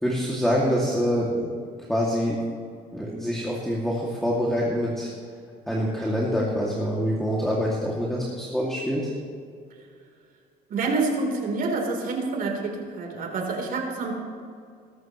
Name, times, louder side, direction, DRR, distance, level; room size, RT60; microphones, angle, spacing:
voice 1, 0.0-1.5 1.9-2.4 2.9-5.1 5.7-9.1, equal, ahead, -4 dB, 2.3 m, -25 dB
voice 2, 10.7-14.1, right 3 dB, 60° right, 1 dB, 3.6 m, -27 dB
21.0 x 13.0 x 3.1 m, 2.2 s
cardioid pair, 110°, 17 cm